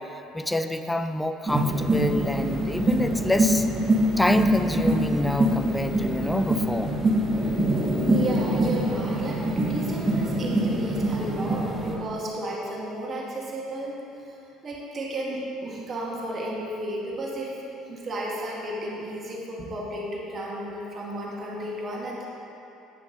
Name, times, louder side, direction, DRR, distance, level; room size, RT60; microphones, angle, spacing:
voice 1, 0.0-3.7 4.2-6.9, left 1 dB, 10° left, 9 dB, 0.4 m, -27 dB
sound 1, 1.5-11.9, right 1 dB, 20° right, 1.4 m, -24 dB
voice 2, 8.0-14.3 14.6-17.6 17.9-22.3, right 1 dB, 40° right, -3 dB, 1.8 m, -33 dB
9.3 x 5.9 x 4.0 m, 2.9 s
supercardioid pair, 90°, 0 cm